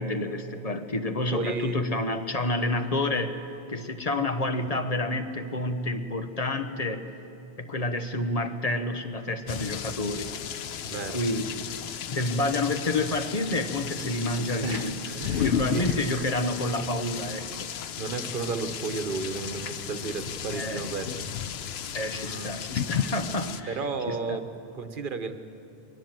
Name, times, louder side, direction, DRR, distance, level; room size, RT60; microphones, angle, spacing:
voice 1, 0.0-3.4 3.7-7.1 7.6-10.3 11.1-11.5 12.1-15.0 15.4-17.7 20.5-20.8 21.9-23.8 24.1-24.4, left 2 dB, 40° left, 7 dB, 1.1 m, -29 dB
voice 2, 1.2-1.8 10.8-11.2 14.6-16.2 18.0-21.3 22.1-22.5 23.7-25.5, right 4 dB, 55° right, 8 dB, 1.3 m, -33 dB
sound 1, 9.5-23.6, left 8 dB, 85° left, 0.9 m, -34 dB
22.0 x 18.5 x 7.5 m, 2.7 s
omnidirectional pair, 1.0 m